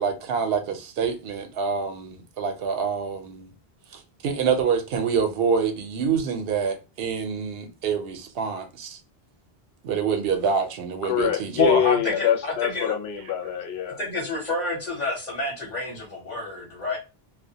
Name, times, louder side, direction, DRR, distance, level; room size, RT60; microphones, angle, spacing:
voice 1, 0.0-3.5 3.9-9.0 9.8-11.5, right 6 dB, 75° right, 0.8 m, -26 dB
voice 2, 11.0-14.0, left 8 dB, 85° left, 0.8 m, -25 dB
voice 3, 11.6-12.9 14.0-17.0, left 3 dB, 50° left, 0.9 m, -27 dB
2.2 x 2.1 x 2.7 m
omnidirectional pair, 1.0 m